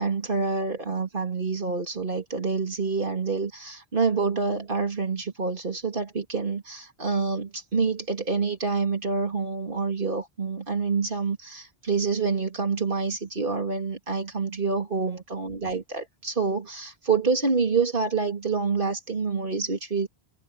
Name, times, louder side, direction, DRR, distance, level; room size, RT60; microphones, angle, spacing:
voice 1, 0.0-20.1, right 4 dB, 50° right, 3.0 m, -27 dB
omnidirectional pair, 1.1 m